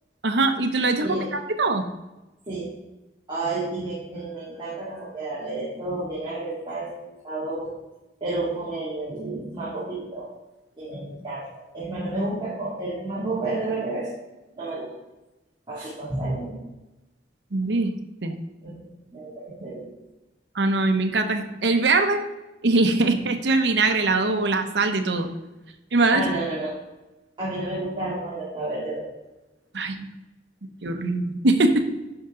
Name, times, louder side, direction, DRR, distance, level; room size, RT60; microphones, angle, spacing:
voice 1, 0.2-1.8 17.5-17.9 18.2-18.3 20.5-22.2 22.6-25.3 25.9-26.2 29.7-30.1 30.8-31.9, right 3 dB, 75° right, 7 dB, 0.9 m, -22 dB
voice 2, 3.3-7.7 8.2-10.3 10.8-14.1 14.6-14.9 15.7-16.6 18.6-18.7 19.1-19.9 23.0-23.1 26.1-26.8 27.4-29.1, right 2 dB, 25° right, -10 dB, 2.6 m, -31 dB
10.5 x 5.6 x 3.8 m, 1.0 s
head